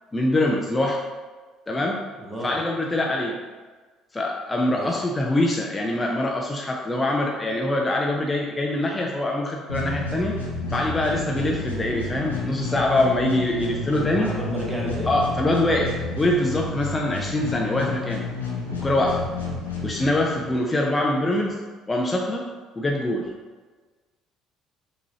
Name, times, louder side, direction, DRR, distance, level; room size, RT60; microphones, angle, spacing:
voice 1, 0.1-1.0 1.7-2.0 2.4-3.4 4.1-10.4 10.7-14.3 15.1-18.2 18.8-19.2 19.8-21.6 21.9-22.4 22.8-23.3, left 1 dB, 20° left, -1 dB, 0.5 m, -24 dB
voice 2, 2.2-2.6 4.7-5.0 14.2-15.1 19.2-19.3, equal, 15° right, -3 dB, 1.1 m, -32 dB
sound 1, 9.7-20.6, left 3 dB, 85° left, 0.7 m, -31 dB
sound 2, 10.5-16.3, right 1 dB, 65° right, 0.7 m, -42 dB
5.9 x 3.0 x 2.8 m, 1.4 s
figure-of-eight pair, 55°, 0 cm